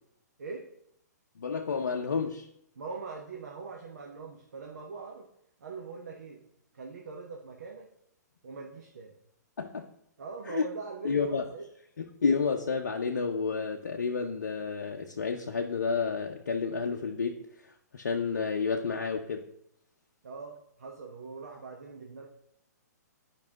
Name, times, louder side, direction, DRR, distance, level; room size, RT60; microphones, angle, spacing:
voice 1, 1.4-2.5 9.6-9.9 10.5-10.7 11.0-11.4 12.0-19.5, left 5 dB, 65° left, 2 dB, 0.6 m, -30 dB
voice 2, 2.8-5.3 5.6-6.4 6.7-7.9 8.4-9.1 10.2-11.6 20.2-22.3, right 4 dB, 65° right, 1 dB, 1.0 m, -42 dB
10.5 x 5.3 x 2.9 m, 0.74 s
figure-of-eight pair, 120°, 10 cm